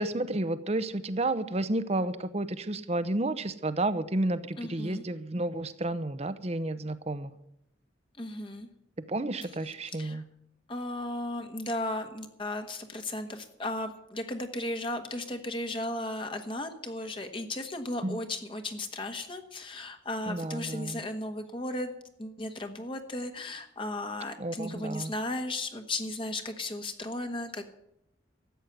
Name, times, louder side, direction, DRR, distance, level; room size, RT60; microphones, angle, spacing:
voice 1, 0.0-7.3 9.1-10.2 18.0-18.2 20.3-21.0 24.4-25.1, right 2 dB, 35° right, 13 dB, 0.8 m, -31 dB
voice 2, 4.6-5.1 8.2-8.7 9.9-10.2 10.7-21.9 22.2-27.7, left 1 dB, 30° left, 6 dB, 1.3 m, -35 dB
14.0 x 8.3 x 9.4 m, 0.80 s
head